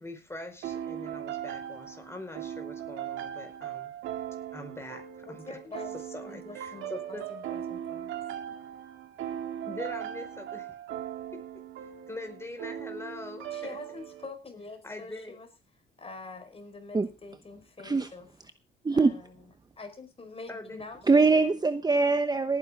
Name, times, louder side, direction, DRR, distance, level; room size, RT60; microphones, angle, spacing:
voice 1, 0.0-3.9 4.5-5.6 6.1-7.3 9.7-10.7 11.3-11.4 12.1-13.8 14.8-15.4 20.5-20.8, left 2 dB, 15° left, 5 dB, 5.1 m, -43 dB
sound 1, 0.6-14.3, right 10 dB, 85° right, 1.8 m, -39 dB
voice 2, 5.2-5.9 6.2-8.1 8.5-8.6 13.5-15.5 16.0-18.3 18.9-21.6, left 3 dB, 30° left, 6 dB, 5.0 m, -45 dB
voice 3, 18.8-19.2 21.1-22.6, right 4 dB, 20° right, 10 dB, 0.9 m, -23 dB
18.0 x 10.0 x 3.7 m, 0.30 s
cardioid pair, 90°, 20 cm